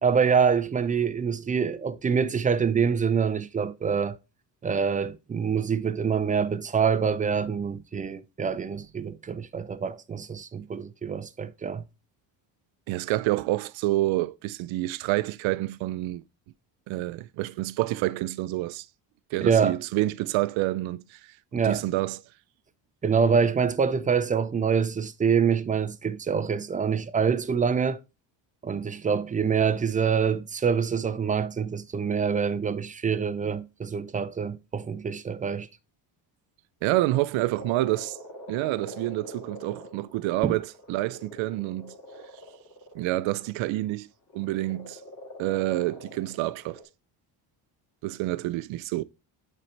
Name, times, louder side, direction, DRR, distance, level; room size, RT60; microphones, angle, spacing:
voice 1, 0.0-4.2 4.6-11.8 19.4-19.8 21.5-21.8 23.0-28.0 28.6-35.7 40.4-40.6, right 6 dB, 20° right, 0.3 m, -25 dB
voice 2, 12.9-16.2 16.9-18.9 19.3-21.2 21.6-22.2 36.8-38.2 38.5-41.9 42.9-44.1 44.3-45.0 45.4-46.8 48.0-49.0, right 17 dB, 80° right, 0.6 m, -28 dB
Frog, 37.6-43.5 44.3-46.8, left 1 dB, 40° left, 2.2 m, -45 dB
7.7 x 4.3 x 3.2 m
cardioid pair, 120°, 47 cm